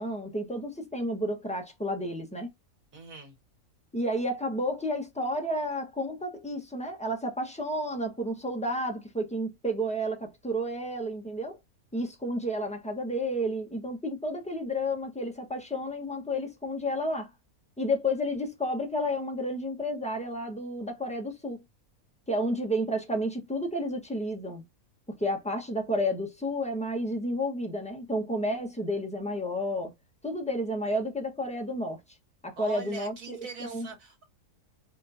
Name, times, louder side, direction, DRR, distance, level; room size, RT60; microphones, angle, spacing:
voice 1, 0.0-2.5 3.9-11.6 11.9-17.3 17.8-21.6 22.3-24.6 25.2-29.9 30.2-32.0 32.4-33.9, equal, 5° left, 1.2 m, -31 dB
voice 2, 2.9-3.3 32.6-34.2, right 4 dB, 65° right, 1.9 m, -42 dB
5.3 x 3.6 x 2.8 m
omnidirectional pair, 1.5 m